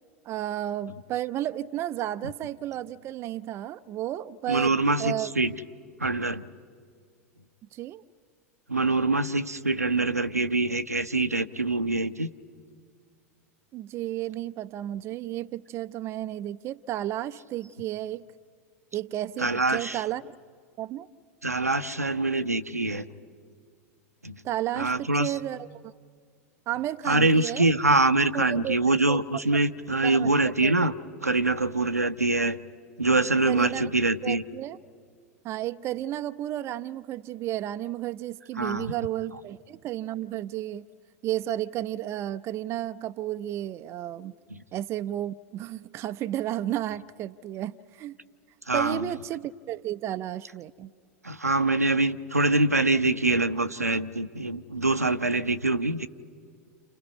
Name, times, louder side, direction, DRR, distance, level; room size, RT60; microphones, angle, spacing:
voice 1, 0.2-4.7 5.0-5.3 7.7-8.0 13.7-18.3 18.9-20.4 20.8-21.1 24.4-25.9 26.7-27.7 28.3-28.8 29.1-29.2 30.0-30.3 30.6-30.7 33.2-33.9 34.2-34.8 35.4-40.9 41.2-44.3 44.7-48.2 48.7-50.9, right 13 dB, 35° right, 0.6 m, -32 dB
voice 2, 4.5-5.5 6.0-6.4 8.7-12.3 19.4-20.0 21.4-23.0 24.2-24.3 24.8-25.3 27.1-30.9 31.2-32.6 33.0-34.4 38.6-38.9 48.7-49.0 51.2-56.1, right 2 dB, 90° right, 0.7 m, -24 dB
29.5 x 29.0 x 5.6 m
figure-of-eight pair, 90°, 8 cm